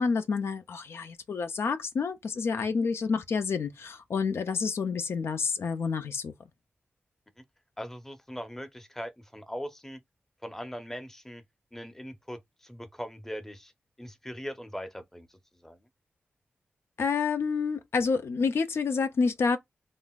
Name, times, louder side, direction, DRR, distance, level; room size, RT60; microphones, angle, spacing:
voice 1, 0.0-6.3 17.0-19.6, left 5 dB, 80° left, 0.5 m, -28 dB
voice 2, 7.8-10.0 10.4-11.4 11.7-13.7 14.0-15.8, equal, 10° left, 0.6 m, -40 dB
3.7 x 2.5 x 2.3 m
cardioid pair, 60°, 4 cm